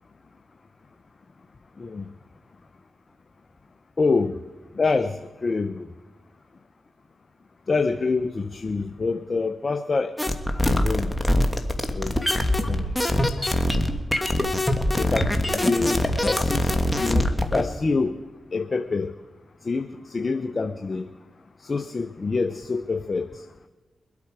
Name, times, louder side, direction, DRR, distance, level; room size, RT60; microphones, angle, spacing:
voice 1, 4.0-4.3 4.8-5.1 5.4-5.8 7.7-10.1 10.7-11.1 11.9-12.1 12.7-12.9 15.0-16.7 17.0-17.2 17.5-18.1 18.5-19.1 19.7-21.1 21.7-23.3, left 4 dB, 45° left, 9 dB, 0.7 m, -26 dB
sound 1, 10.2-17.7, left 1 dB, 10° left, 1.7 m, -23 dB
23.0 x 8.5 x 4.9 m, 1.2 s
supercardioid pair, 40°, 0 cm